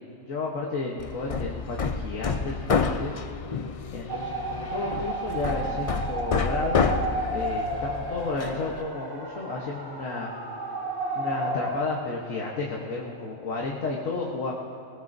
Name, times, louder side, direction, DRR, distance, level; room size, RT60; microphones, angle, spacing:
voice 1, 0.2-3.1 3.9-6.9 7.3-10.3 11.1-14.5, left 3 dB, 80° left, -2 dB, 1.6 m, -32 dB
Hammer, 1.0-8.8, left 5 dB, 65° left, 0.3 m, -29 dB
sound 1, 4.1-11.8, right 2 dB, 20° right, 1.2 m, -32 dB
21.5 x 19.5 x 2.7 m, 2.6 s
omnidirectional pair, 1.4 m